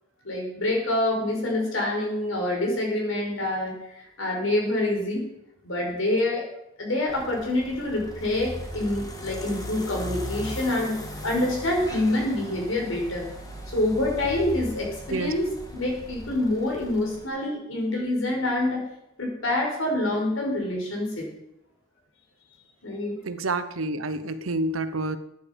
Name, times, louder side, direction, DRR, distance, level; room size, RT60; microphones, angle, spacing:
voice 1, 0.2-3.8 4.2-5.2 5.6-6.5 6.8-13.3 13.7-18.8 19.2-21.3 22.8-23.2, left 1 dB, 70° left, 0 dB, 5.1 m, -26 dB
sound 1, 7.1-17.3, left 1 dB, 20° left, 2.0 m, -38 dB
voice 2, 23.2-25.2, right 2 dB, 85° right, 11 dB, 1.0 m, -28 dB
14.5 x 9.6 x 5.3 m, 0.80 s
head